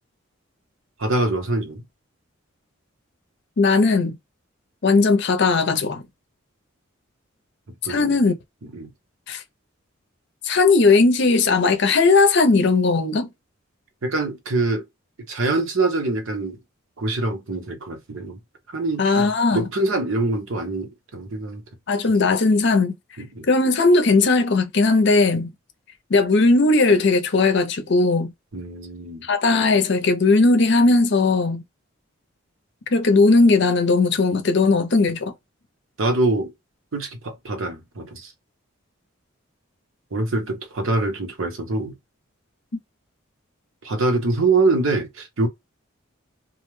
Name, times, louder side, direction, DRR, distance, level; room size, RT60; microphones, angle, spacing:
voice 1, 1.0-1.8 7.8-8.1 8.7-8.9 14.0-14.8 15.3-16.6 17.0-18.4 18.7-21.6 23.2-23.5 28.5-29.3 36.0-36.5 36.9-38.3 40.1-41.9 43.8-45.5, right 2 dB, 70° right, 0.9 m, -24 dB
voice 2, 3.6-4.2 4.8-6.0 7.9-8.4 9.3-9.4 10.4-13.3 19.0-19.7 21.9-22.9 23.5-25.5 26.1-28.3 29.2-31.6 32.9-35.3, left 3 dB, 55° left, 0.6 m, -18 dB
2.4 x 2.2 x 3.0 m
head